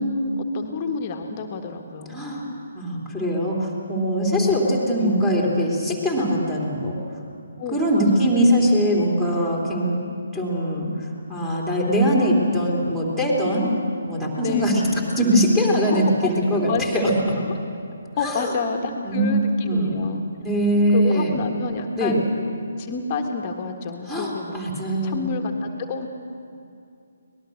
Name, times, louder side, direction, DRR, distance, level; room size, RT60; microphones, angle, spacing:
voice 1, 0.0-2.2 4.4-4.5 4.9-5.1 7.6-8.3 14.4-15.0 15.9-17.1 17.4-17.5 18.2-20.2 20.9-22.4 22.8-24.6 25.0-26.1, left 4 dB, 30° left, 3 dB, 1.5 m, -29 dB
voice 2, 2.1-2.5 2.7-6.9 7.7-10.0 10.3-13.7 14.0-17.3 18.2-18.5 19.0-19.4 19.6-19.9 20.4-21.3 22.0-22.2 24.1-25.3, equal, 5° right, -4 dB, 3.3 m, -21 dB
24.5 x 19.5 x 6.5 m, 2.5 s
figure-of-eight pair, 140°, 0 cm